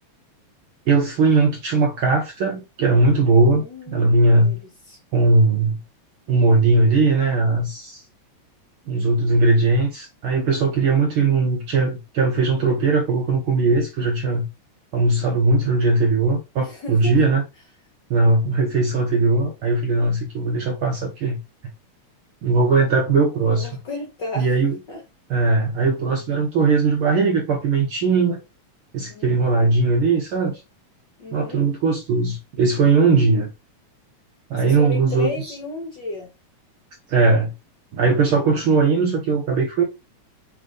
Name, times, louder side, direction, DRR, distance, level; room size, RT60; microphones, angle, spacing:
voice 1, 0.9-4.6 5.1-5.8 6.3-8.0 8.9-14.5 14.9-17.4 18.1-21.4 22.4-23.7 24.3-24.8 25.3-28.4 28.9-30.6 31.3-33.5 34.5-35.3 37.1-37.5 37.9-39.8, right 3 dB, 60° right, 1.5 m, -19 dB
voice 2, 3.5-4.6 4.9-5.0 16.6-17.1 23.4-24.5 24.9-25.0 29.1-29.6 31.2-31.7 34.6-36.3, left 3 dB, 45° left, 1.8 m, -33 dB
7.9 x 3.5 x 3.9 m
omnidirectional pair, 3.3 m